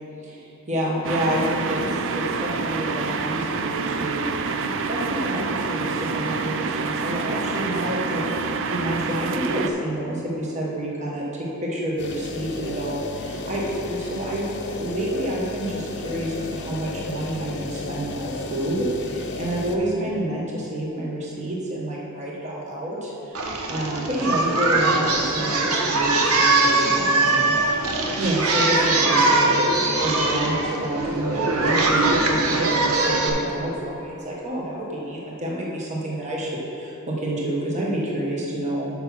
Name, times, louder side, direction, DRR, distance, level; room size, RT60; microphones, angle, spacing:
voice 1, 0.2-4.3 4.9-14.5 14.8-38.9, right 1 dB, 35° right, -4 dB, 1.4 m, -28 dB
sound 1, 1.0-9.7, right 4 dB, 60° right, 0.4 m, -27 dB
sound 2, 12.0-19.8, left 2 dB, 55° left, 0.6 m, -34 dB
Singing, 23.4-33.3, right 2 dB, 85° right, 0.9 m, -21 dB
6.7 x 5.9 x 5.6 m, 2.9 s
head